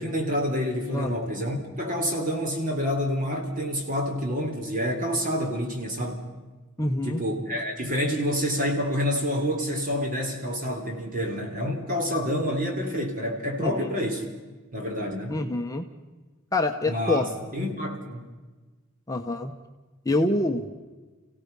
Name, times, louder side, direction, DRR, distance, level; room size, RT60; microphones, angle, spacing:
voice 1, 0.0-6.3 7.0-14.2 14.7-15.4 16.9-18.3, equal, 40° right, 2 dB, 3.6 m, -28 dB
voice 2, 6.8-7.2 13.6-13.9 15.3-15.8 16.5-17.2 19.1-19.5 20.0-20.7, left 2 dB, 15° left, 3 dB, 0.9 m, -26 dB
29.5 x 16.5 x 5.5 m, 1.3 s
head